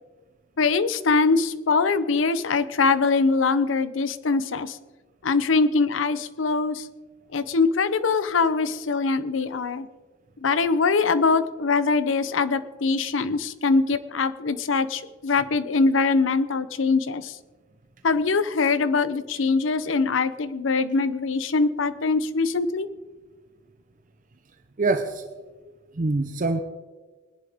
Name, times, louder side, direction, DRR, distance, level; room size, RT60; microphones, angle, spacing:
voice 1, 0.6-4.8 5.2-6.9 7.3-9.9 10.4-17.4 18.0-22.9, left 4 dB, 80° left, 13 dB, 0.7 m, -23 dB
voice 2, 24.8-25.2 26.0-26.6, right 3 dB, 45° right, 7 dB, 0.7 m, -24 dB
20.5 x 10.5 x 3.6 m, 1.4 s
head